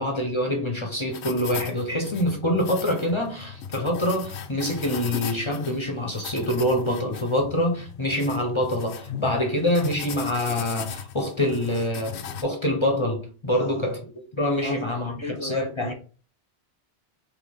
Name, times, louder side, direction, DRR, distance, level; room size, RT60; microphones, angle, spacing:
voice 1, 0.0-15.9, left 1 dB, 30° left, 0.7 m, -25 dB
sound 1, 1.1-12.4, left 7 dB, 85° left, 0.9 m, -37 dB
voice 2, 13.5-14.0 14.6-14.8 15.0-15.9, equal, 35° right, 0.6 m, -36 dB
4.0 x 2.7 x 3.5 m
omnidirectional pair, 1.1 m